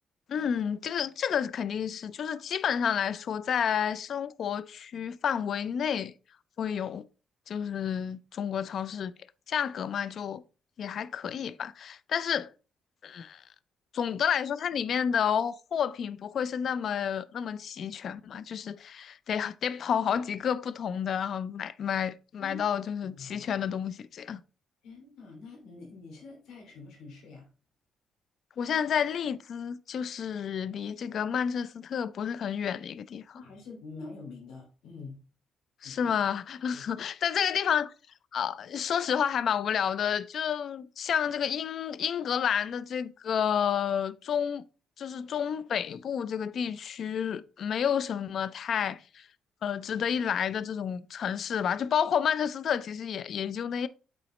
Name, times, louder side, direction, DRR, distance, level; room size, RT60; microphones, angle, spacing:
voice 1, 0.3-6.1 6.6-7.0 7.5-9.1 9.5-10.4 10.8-12.5 13.0-13.4 13.9-24.4 28.6-33.4 35.8-37.9 38.3-44.6 45.0-49.3 49.6-53.9, left 8 dB, 60° left, 0.4 m, -30 dB
voice 2, 23.0-23.5 24.8-27.5 33.3-35.2 35.8-36.2 36.7-36.8, left 3 dB, 85° left, 2.5 m, -46 dB
8.6 x 4.0 x 3.1 m
cardioid pair, 90°, 0 cm